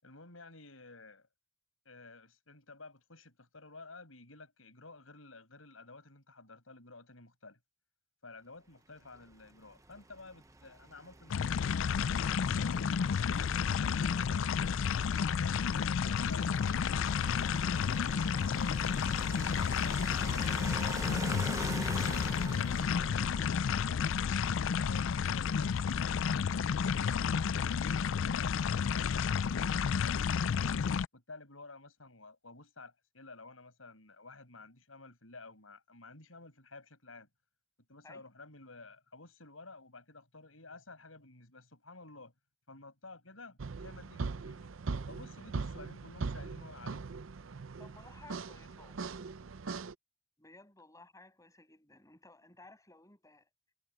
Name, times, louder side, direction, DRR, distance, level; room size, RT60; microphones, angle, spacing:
voice 1, 0.0-1.3 1.9-7.6 8.2-12.1 12.5-14.7 15.4-21.5 21.8-24.3 24.6-29.3 29.6-30.7 31.1-37.3 37.8-42.3 42.7-44.7 45.1-47.2, left 3 dB, 90° left, 7.1 m, -53 dB
sound 1, 9.1-25.3, right 2 dB, 15° right, 0.8 m, -46 dB
sound 2, 11.3-31.1, left 6 dB, 70° left, 0.4 m, -31 dB
sound 3, 43.6-49.9, right 4 dB, 75° right, 0.6 m, -40 dB
voice 2, 47.8-49.1 50.4-53.5, left 2 dB, 15° left, 7.1 m, -57 dB
head